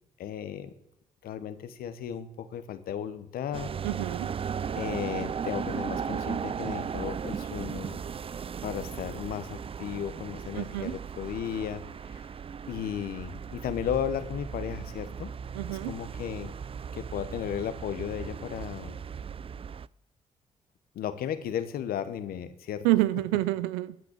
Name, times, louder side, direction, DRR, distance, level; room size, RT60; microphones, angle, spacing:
voice 1, 0.2-0.7 1.2-3.7 4.7-8.0 8.6-12.3 12.7-15.3 15.7-16.5 16.9-19.0 20.9-22.9, left 9 dB, 75° left, 11 dB, 1.1 m, -35 dB
sound 1, 3.5-19.9, right 7 dB, 35° right, 0.4 m, -36 dB
voice 2, 3.8-4.3 10.6-10.9 15.5-15.9 22.8-24.0, right 17 dB, 90° right, 16 dB, 0.5 m, -27 dB
14.0 x 6.1 x 6.9 m, 0.85 s
hypercardioid pair, 45°, 16 cm